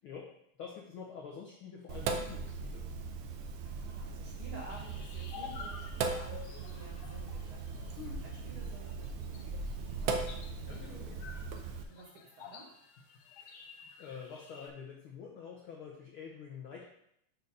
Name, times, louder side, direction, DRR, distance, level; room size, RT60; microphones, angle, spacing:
voice 1, 0.6-2.8 7.9-8.2 10.7-11.2 13.4-13.6 14.0-16.8, left 6 dB, 70° left, -1 dB, 1.3 m, -47 dB
Sink (filling or washing), 1.9-11.8, right 4 dB, 80° right, 1.3 m, -39 dB
voice 2, 3.2-10.8 11.9-12.7, right 1 dB, 50° right, -3 dB, 2.3 m, -53 dB
sound 1, 4.7-14.7, left 5 dB, 90° left, 2.4 m, -51 dB
6.6 x 4.5 x 5.3 m, 0.75 s
omnidirectional pair, 3.4 m